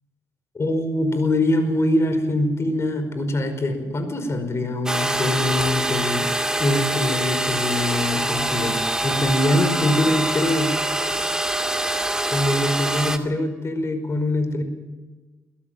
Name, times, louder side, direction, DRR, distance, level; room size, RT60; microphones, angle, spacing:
voice 1, 0.5-6.3 6.6-10.8 12.3-14.6, left 1 dB, 40° left, 9 dB, 5.2 m, -23 dB
sound 1, 4.9-13.2, right 1 dB, 10° right, 2.4 m, -24 dB
22.5 x 16.0 x 7.5 m, 1.3 s
supercardioid pair, 55°, 7 cm